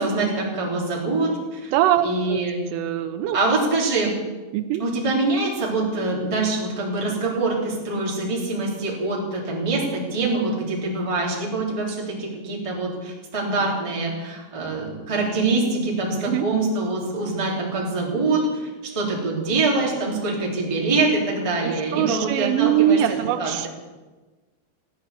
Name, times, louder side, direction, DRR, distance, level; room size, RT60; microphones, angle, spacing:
voice 1, 0.0-1.7 2.0-2.6 3.3-4.1 4.8-18.7 18.9-23.7, right 3 dB, 10° right, -3 dB, 2.1 m, -24 dB
voice 2, 1.7-2.4 2.7-3.4 4.5-4.8 16.2-16.5 21.6-23.7, right 11 dB, 80° right, 10 dB, 3.3 m, -22 dB
15.5 x 9.8 x 8.2 m, 1.2 s
omnidirectional pair, 5.8 m